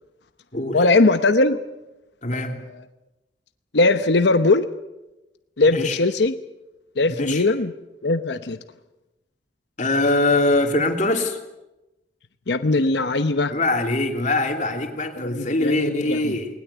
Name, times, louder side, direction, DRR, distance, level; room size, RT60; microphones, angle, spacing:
voice 1, 0.7-1.6 2.3-2.8 3.7-4.7 5.6-6.3 7.0-7.7 8.0-8.6 12.5-13.5 15.2-16.3, left 2 dB, 70° left, 10 dB, 0.9 m, -20 dB
voice 2, 2.2-2.6 5.7-6.0 7.2-7.4 9.8-11.4 13.5-16.5, left 2 dB, 45° left, 4 dB, 2.9 m, -22 dB
20.5 x 19.5 x 8.1 m, 0.98 s
head